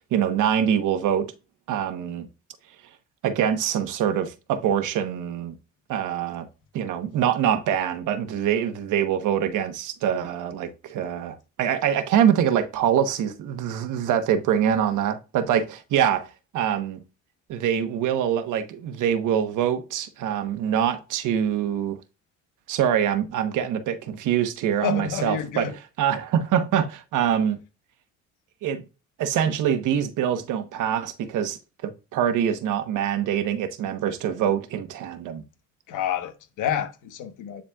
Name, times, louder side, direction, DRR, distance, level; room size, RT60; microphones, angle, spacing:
voice 1, 0.1-1.3 1.7-2.3 3.2-5.5 5.9-6.5 6.7-16.3 16.5-17.0 17.5-22.0 22.7-25.7 26.0-27.6 28.6-28.8 29.2-35.4, right 9 dB, 85° right, 1.1 m, -24 dB
voice 2, 24.8-25.7 35.9-37.6, left 9 dB, 90° left, 1.2 m, -29 dB
10.0 x 4.1 x 2.3 m
cardioid pair, 90°, 30 cm